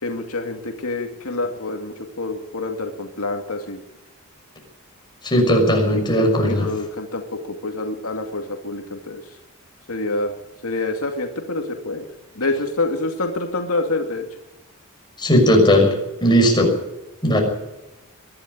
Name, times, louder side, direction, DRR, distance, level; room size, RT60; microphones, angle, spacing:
voice 1, 0.0-3.8 5.9-9.2 9.9-10.3 10.6-12.0 12.4-14.2, left 2 dB, 75° left, 3 dB, 2.3 m, -27 dB
voice 2, 5.2-6.7 15.2-15.9 16.2-16.7 17.2-17.4, equal, 20° left, 1 dB, 6.1 m, -16 dB
22.5 x 12.0 x 9.9 m, 1.0 s
head